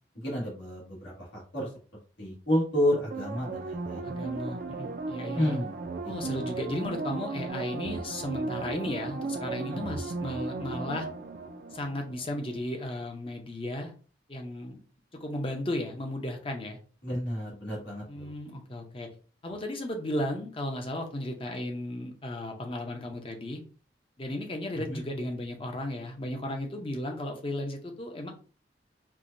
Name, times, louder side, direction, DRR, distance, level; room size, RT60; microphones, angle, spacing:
voice 1, 0.2-1.7 2.2-4.1 5.4-5.7 9.6-9.8 17.0-18.3 24.9-25.0, left 1 dB, 75° left, -5 dB, 1.6 m, -30 dB
sound 1, 3.1-12.5 12.8-12.9, right 3 dB, 50° right, 0.4 m, -36 dB
voice 2, 4.0-5.6 6.0-11.1 11.7-13.9 14.3-14.8 15.2-16.8 18.1-19.1 19.4-23.6 24.2-28.3, left 1 dB, 30° left, 3 dB, 0.6 m, -35 dB
4.6 x 2.2 x 2.6 m, 0.38 s
head